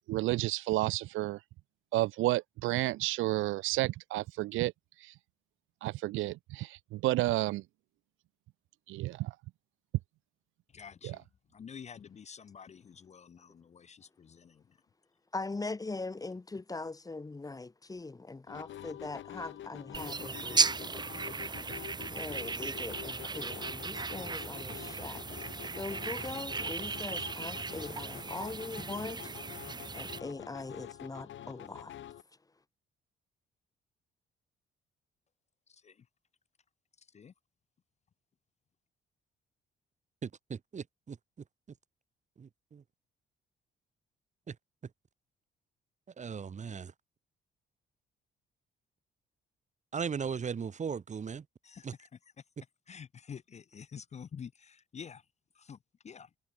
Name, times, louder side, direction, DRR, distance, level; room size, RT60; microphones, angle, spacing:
voice 1, 0.1-1.4 1.9-4.7 5.0-5.1 5.8-7.6 8.9-9.3 11.0-11.2, right 17 dB, 85° right, 0.5 m, -31 dB
voice 2, 10.7-11.2 11.5-14.6 35.8-35.9 37.1-37.3 51.6-52.1 52.9-55.2 55.6-55.8 56.0-56.3, left 7 dB, 35° left, 0.5 m, -48 dB
voice 3, 15.3-20.7 22.1-25.3 25.7-29.3 29.9-31.9, left 3 dB, 20° left, 1.1 m, -41 dB
sound 1, 18.5-32.2, left 11 dB, 70° left, 2.4 m, -47 dB
sound 2, 19.9-30.2, right 4 dB, 20° right, 0.7 m, -36 dB
voice 4, 40.2-41.2 42.4-42.8 44.5-44.6 46.2-46.9 49.9-51.4 51.8-51.9, right 6 dB, 35° right, 1.2 m, -37 dB
cardioid pair, 90°, 20 cm